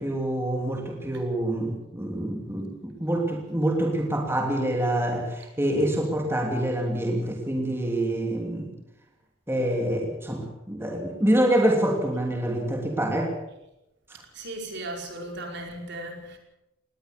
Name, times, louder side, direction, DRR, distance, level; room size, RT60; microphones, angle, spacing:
voice 1, 0.0-8.7 9.5-13.3, right 1 dB, 10° right, 3.0 m, -26 dB
voice 2, 14.3-16.4, right 1 dB, 55° right, 5.0 m, -36 dB
20.5 x 18.5 x 7.0 m
head